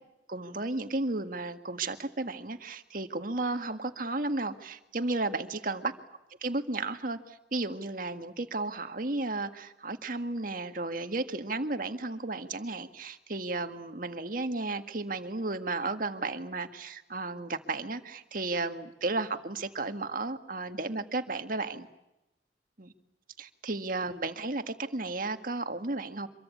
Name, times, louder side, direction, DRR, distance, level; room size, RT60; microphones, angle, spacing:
voice 1, 0.3-5.9 6.4-21.9 22.8-22.9 23.4-26.3, right 2 dB, 50° right, 8 dB, 1.8 m, -33 dB
26.0 x 23.0 x 8.6 m, 0.94 s
head